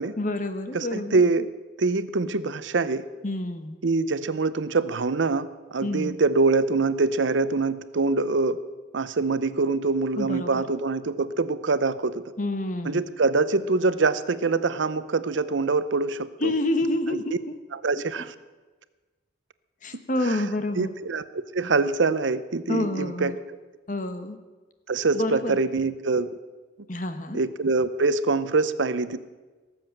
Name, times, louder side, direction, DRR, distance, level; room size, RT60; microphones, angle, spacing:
voice 1, 0.2-1.2 3.2-3.8 5.8-6.2 10.2-10.6 12.4-13.0 16.4-17.6 18.2-18.3 19.8-20.9 22.7-23.4 23.9-24.4 25.1-25.6 26.9-27.4, left 1 dB, 40° left, 9 dB, 1.1 m, -28 dB
voice 2, 0.7-1.5 1.8-3.0 3.8-8.6 8.9-12.2 12.8-16.5 17.8-18.3 20.3-20.4 20.8-23.3 24.9-26.3 27.3-29.2, right 3 dB, 75° right, 14 dB, 0.7 m, -24 dB
18.0 x 7.7 x 7.8 m, 1.3 s
head